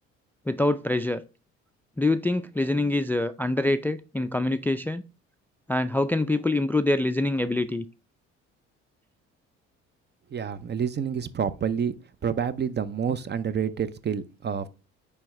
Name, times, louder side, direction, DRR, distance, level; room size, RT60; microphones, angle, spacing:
voice 1, 0.5-1.2 2.0-5.0 5.7-7.9, left 2 dB, 5° left, 0.3 m, -25 dB
voice 2, 10.3-11.9 12.2-14.7, right 7 dB, 35° right, 0.7 m, -28 dB
8.8 x 3.5 x 3.2 m
supercardioid pair, 70°, 30 cm